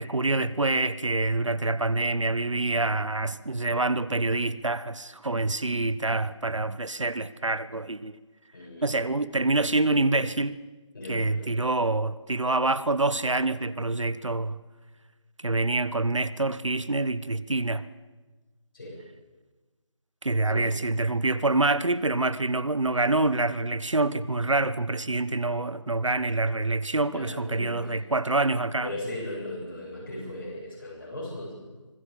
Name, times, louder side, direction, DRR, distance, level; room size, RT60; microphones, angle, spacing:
voice 1, 0.0-8.2 8.8-10.6 11.1-14.6 15.4-17.9 20.2-29.0, right 2 dB, 75° right, 1.3 m, -26 dB
voice 2, 8.5-9.1 10.9-11.6 18.7-19.0 20.5-20.6 27.1-28.0 28.8-31.6, left 1 dB, 45° left, 8.0 m, -37 dB
25.5 x 20.0 x 7.5 m
figure-of-eight pair, 170°, 16 cm